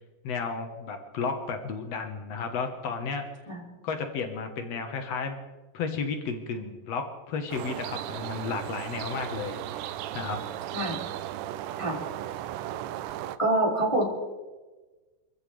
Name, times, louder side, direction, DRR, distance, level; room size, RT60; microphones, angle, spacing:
voice 1, 0.2-3.2 3.8-5.4 5.7-10.4, left 5 dB, 65° left, 5 dB, 1.6 m, -33 dB
sound 1, 7.5-13.4, right 12 dB, 85° right, 2.8 m, -36 dB
voice 2, 13.4-14.1, right 2 dB, 10° left, -3 dB, 1.9 m, -26 dB
27.0 x 15.0 x 3.4 m, 1.2 s
omnidirectional pair, 5.0 m